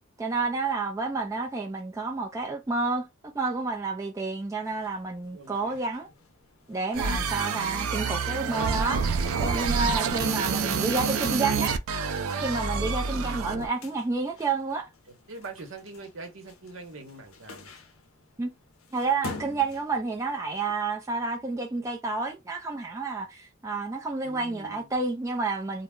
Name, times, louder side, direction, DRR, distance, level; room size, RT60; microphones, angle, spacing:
voice 1, 0.2-3.1 3.3-6.1 6.7-11.8 12.4-14.9 18.4-18.5 18.9-25.8, right 3 dB, 15° right, 0.3 m, -30 dB
sound 1, 4.6-20.8, left 4 dB, 70° left, 0.6 m, -49 dB
voice 2, 5.3-5.8 10.4-11.3 15.1-17.7 24.2-25.0, right 3 dB, 65° right, 0.8 m, -43 dB
sound 2, 6.9-13.7, right 5 dB, 85° right, 0.4 m, -28 dB
2.1 x 2.0 x 3.5 m
head